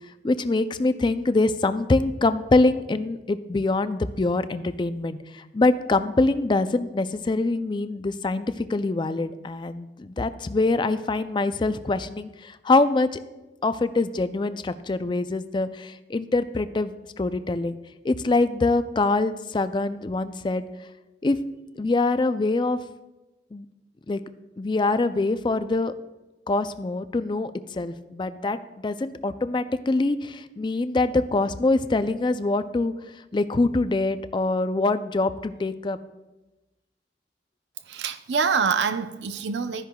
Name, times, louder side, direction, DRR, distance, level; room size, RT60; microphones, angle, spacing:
voice 1, 0.2-13.2 13.6-17.8 18.0-20.7 21.2-21.4 21.8-22.8 23.5-23.7 24.1-24.2 24.6-25.9 26.5-32.9 33.3-36.0, left 2 dB, 25° left, 12 dB, 0.4 m, -24 dB
voice 2, 37.9-39.9, right 5 dB, 85° right, 10 dB, 0.5 m, -25 dB
13.0 x 10.5 x 2.3 m, 1.1 s
head